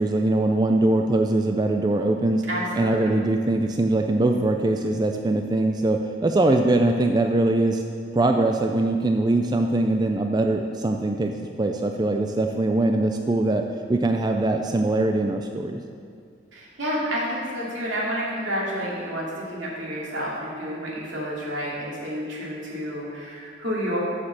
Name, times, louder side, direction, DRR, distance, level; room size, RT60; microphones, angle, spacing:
voice 1, 0.0-2.4 2.8-7.8 8.1-11.3 11.6-15.8, right 2 dB, 20° right, 4 dB, 0.3 m, -22 dB
voice 2, 2.5-3.1 16.5-24.0, equal, 80° right, -6 dB, 2.7 m, -30 dB
6.9 x 6.7 x 7.4 m, 2.2 s
head